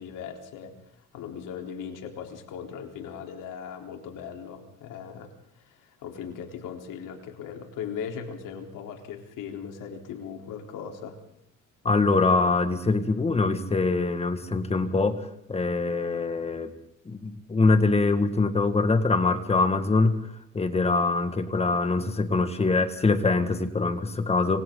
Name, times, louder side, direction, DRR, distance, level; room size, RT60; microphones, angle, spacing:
voice 1, 0.0-11.2, left 7 dB, 85° left, 3 dB, 4.0 m, -39 dB
voice 2, 11.8-16.7 17.1-20.2 20.5-24.6, left 3 dB, 20° left, 8 dB, 1.9 m, -24 dB
26.5 x 26.0 x 3.9 m, 0.74 s
cardioid pair, 155°, 31 cm